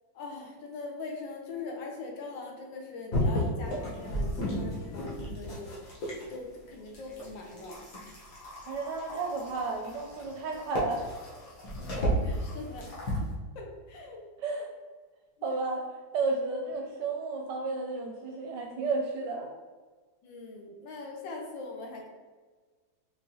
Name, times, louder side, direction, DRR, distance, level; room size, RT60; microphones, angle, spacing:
voice 1, 0.1-5.7 6.3-7.8 11.8-13.0 13.5-14.2 20.2-22.1, left 3 dB, 70° left, 1 dB, 1.4 m, -41 dB
sound 1, 3.1-6.4 6.9-13.3, equal, 50° left, 1.3 m, -33 dB
voice 2, 8.6-11.0 14.4-14.7 15.4-19.5, right 3 dB, 70° right, 1 dB, 1.1 m, -32 dB
4.7 x 3.3 x 2.7 m, 1.4 s
omnidirectional pair, 2.2 m